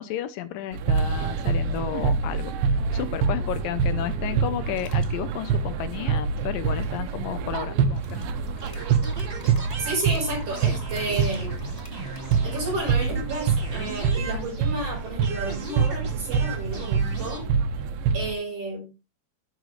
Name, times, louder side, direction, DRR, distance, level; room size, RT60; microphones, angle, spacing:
voice 1, 0.0-2.5 2.9-8.3, left 11 dB, 80° left, 12 dB, 2.4 m, -32 dB
sound 1, 0.7-18.3, right 5 dB, 90° right, 2.7 m, -26 dB
sound 2, 4.7-5.2 6.4-7.1 7.9-13.2, left 1 dB, 15° left, 1.3 m, -48 dB
sound 3, 8.6-14.9 15.2-17.4, right 4 dB, 25° right, 1.3 m, -39 dB
voice 2, 9.8-11.6 12.4-17.5 18.1-18.9, right 2 dB, 45° right, 0 dB, 6.0 m, -31 dB
12.0 x 7.3 x 3.2 m, 0.27 s
omnidirectional pair, 4.0 m